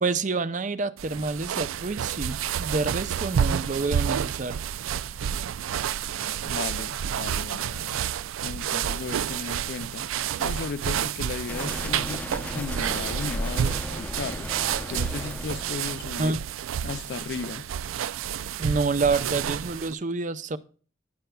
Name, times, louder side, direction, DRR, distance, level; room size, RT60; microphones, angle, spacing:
voice 1, 0.0-4.6 16.2-16.4 18.6-20.6, right 3 dB, 40° right, 0.5 m, -28 dB
sound 1, 1.0-19.9, right 9 dB, 90° right, 0.4 m, -30 dB
voice 2, 6.4-8.0 8.4-10.1 10.4-14.6 14.9-16.4 16.8-17.7, left 5 dB, 55° left, 0.3 m, -36 dB
sound 2, 11.5-16.4, left 1 dB, 10° left, 0.6 m, -35 dB
19.0 x 6.7 x 2.3 m
head